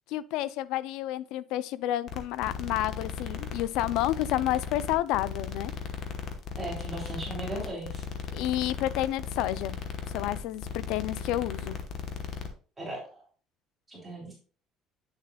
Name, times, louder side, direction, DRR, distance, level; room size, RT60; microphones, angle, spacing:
voice 1, 0.1-5.7 8.3-9.7 10.1-11.8, left 14 dB, 75° left, 0.4 m, -30 dB
sound 1, 2.1-12.5, left 6 dB, 45° left, 1.0 m, -37 dB
voice 2, 6.6-8.0 12.8-13.2 13.9-14.3, right 2 dB, 10° right, 3.0 m, -37 dB
8.9 x 6.9 x 2.3 m
cardioid pair, 175°, 0 cm